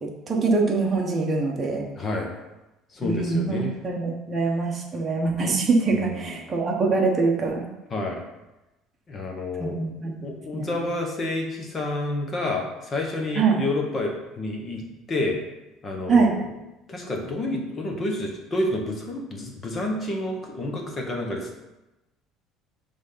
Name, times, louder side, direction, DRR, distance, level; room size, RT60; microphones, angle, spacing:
voice 1, 0.0-1.9 3.0-7.7 9.6-10.8 13.3-13.6 16.1-16.4, right 4 dB, 20° right, -1 dB, 1.1 m, -24 dB
voice 2, 2.0-2.3 2.9-3.8 6.1-6.5 7.9-8.2 9.1-9.8 10.2-14.8 15.1-15.4 15.8-16.5 16.9-21.6, left 2 dB, 25° left, 1 dB, 1.2 m, -29 dB
6.2 x 3.6 x 5.7 m, 0.99 s
cardioid pair, 155°, 0 cm